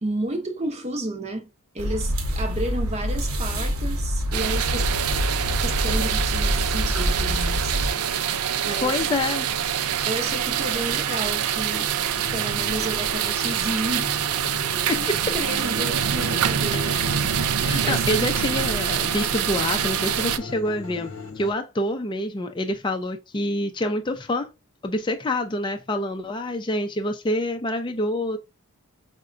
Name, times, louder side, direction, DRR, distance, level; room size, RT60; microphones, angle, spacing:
voice 1, 0.0-1.5 1.7-4.8 5.6-7.8 8.6-9.0 10.1-11.9 12.3-14.1 14.6-17.5 17.8-18.1, right 1 dB, 30° right, 0.6 m, -31 dB
sound 1, 1.8-7.9, equal, 70° right, 0.8 m, -26 dB
sound 2, 4.3-20.4, right 8 dB, 85° right, 0.4 m, -25 dB
voice 2, 8.8-9.7 14.9-15.3 16.7-17.0 17.6-24.5 24.8-28.4, left 1 dB, 20° left, 0.4 m, -27 dB
sound 3, 12.2-21.5, left 3 dB, 65° left, 0.6 m, -38 dB
4.7 x 2.2 x 2.5 m
head